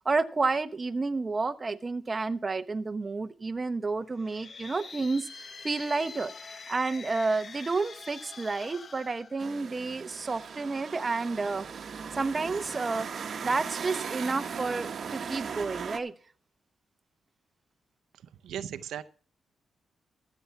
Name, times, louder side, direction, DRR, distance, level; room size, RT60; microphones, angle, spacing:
voice 1, 0.0-6.3 6.7-11.6 12.2-13.1 13.4-16.1, right 3 dB, 30° right, 10 dB, 0.7 m, -30 dB
sound 1, 4.1-10.0, left 4 dB, 40° left, 0.7 m, -46 dB
sound 2, 9.4-16.0, right 6 dB, 50° right, 1.1 m, -38 dB
voice 2, 18.1-19.0, right 9 dB, 85° right, 11 dB, 0.6 m, -38 dB
14.0 x 7.1 x 5.6 m, 0.40 s
cardioid pair, 105°, 0 cm